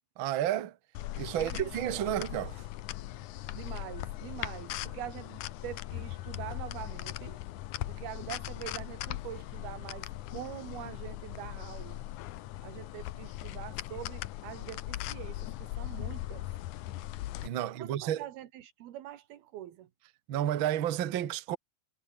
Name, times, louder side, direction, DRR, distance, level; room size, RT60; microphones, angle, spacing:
voice 1, 0.2-0.7 1.1-2.6 17.4-18.2 20.3-21.6, right 11 dB, 65° right, 1.2 m, -31 dB
sound 1, 0.9-17.5, left 15 dB, 70° left, 2.0 m, -39 dB
voice 2, 1.3-2.1 3.5-7.4 7.9-12.0 12.6-16.5 17.6-19.9, right 13 dB, 85° right, 3.5 m, -44 dB
omnidirectional pair, 4.3 m